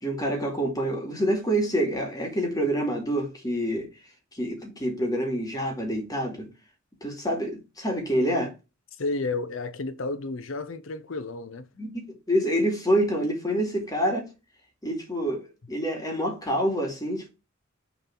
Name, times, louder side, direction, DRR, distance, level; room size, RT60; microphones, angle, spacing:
voice 1, 0.0-3.9 4.3-6.5 7.0-8.5 11.8-14.3 14.8-17.3, equal, 20° left, 2.4 m, -27 dB
voice 2, 8.9-11.7, left 3 dB, 70° left, 0.7 m, -32 dB
6.8 x 4.1 x 5.9 m
head